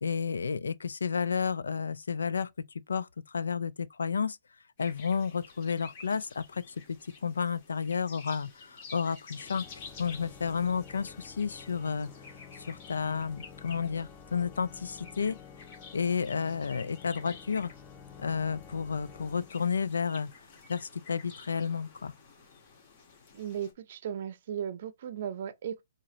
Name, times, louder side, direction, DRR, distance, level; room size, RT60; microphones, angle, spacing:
voice 1, 0.0-4.4 4.8-12.1 12.6-15.4 15.9-17.7 18.2-20.3 20.7-22.1, left 6 dB, 75° left, 0.4 m, -31 dB
sound 1, 4.8-23.7, left 5 dB, 40° left, 1.6 m, -52 dB
Organ, 9.3-20.1, left 7 dB, 25° left, 0.7 m, -51 dB
voice 2, 23.3-25.8, right 9 dB, 50° right, 0.6 m, -36 dB
4.8 x 2.8 x 3.1 m
figure-of-eight pair, 130°, 0 cm